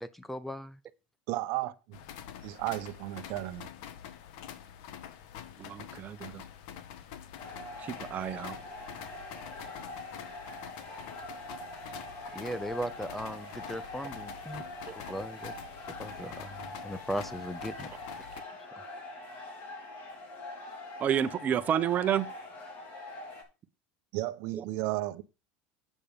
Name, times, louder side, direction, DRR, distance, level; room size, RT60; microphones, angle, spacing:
voice 1, 0.0-0.8 12.3-14.6 14.9-15.5 16.0-17.9 18.2-18.3, equal, 5° left, 0.6 m, -38 dB
voice 2, 1.3-2.0 2.4-3.7 24.1-25.2, right 16 dB, 65° right, 0.9 m, -34 dB
sound 1, 1.9-18.4, left 9 dB, 70° left, 1.4 m, -46 dB
voice 3, 5.6-6.4 7.8-8.6 21.0-22.3 24.5-24.6, right 9 dB, 35° right, 1.1 m, -30 dB
sound 2, 7.4-23.4, left 2 dB, 45° left, 4.6 m, -44 dB
8.4 x 6.9 x 5.2 m
supercardioid pair, 110°, 5 cm